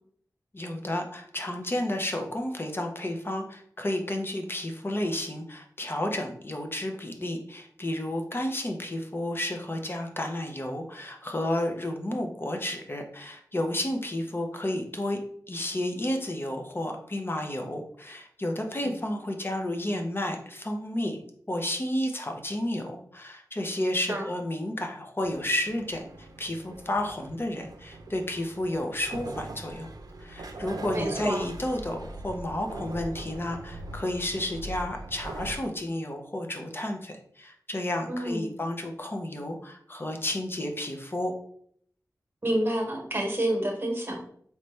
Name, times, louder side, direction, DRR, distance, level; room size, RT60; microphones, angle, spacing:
voice 1, 0.5-15.2 15.5-21.2 21.5-29.9 30.2-41.3, left 1 dB, 35° left, 3 dB, 0.7 m, -31 dB
sound 1, 25.2-35.6, right 2 dB, 75° right, 0.5 m, -41 dB
voice 2, 30.9-31.5 38.1-38.5 42.4-44.2, right 1 dB, 30° right, 2 dB, 1.2 m, -29 dB
4.1 x 3.2 x 3.2 m, 0.63 s
wide cardioid pair, 60°, 7 cm